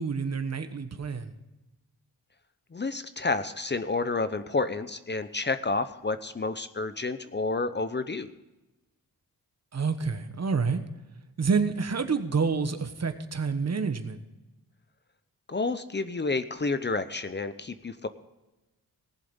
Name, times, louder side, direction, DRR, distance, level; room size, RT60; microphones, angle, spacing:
voice 1, 0.0-1.3 9.7-10.8 11.4-14.2, right 5 dB, 45° right, 9 dB, 1.2 m, -28 dB
voice 2, 2.7-8.3 15.5-18.1, left 3 dB, 30° left, 11 dB, 0.7 m, -30 dB
18.5 x 7.6 x 5.4 m, 1.0 s
wide cardioid pair, 110°, 36 cm